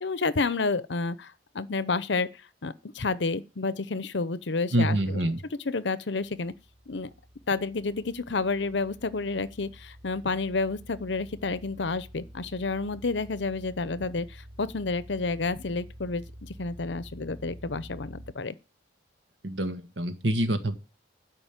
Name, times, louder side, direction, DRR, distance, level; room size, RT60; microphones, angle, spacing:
voice 1, 0.0-2.3 2.6-5.2 5.6-6.5 6.9-7.1 7.5-18.5, left 3 dB, 65° left, 0.8 m, -30 dB
voice 2, 4.7-5.4 19.4-20.8, right 1 dB, 65° right, 1.8 m, -26 dB
sound 1, 6.2-18.3, equal, 15° right, 3.7 m, -48 dB
12.5 x 5.4 x 9.1 m
head